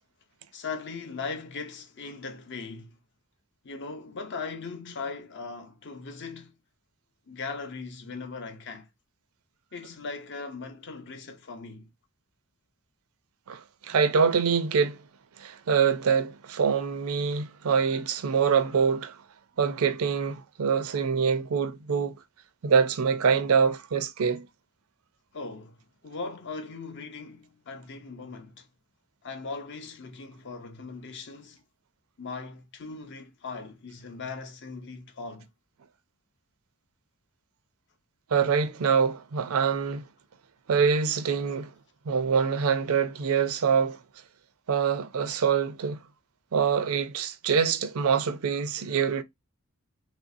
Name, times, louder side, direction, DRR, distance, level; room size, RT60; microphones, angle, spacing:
voice 1, 0.5-3.0 3.6-6.5 7.3-8.9 9.7-11.9 25.3-25.8 26.0-28.7 29.2-31.6 32.2-35.5, left 4 dB, 55° left, 0.6 m, -39 dB
voice 2, 13.5-15.0 15.4-19.2 19.6-22.2 22.6-24.5 38.3-40.1 40.7-41.7 42.1-44.0 44.7-46.0 46.5-49.2, right 6 dB, 75° right, 0.5 m, -25 dB
3.2 x 2.5 x 2.6 m
head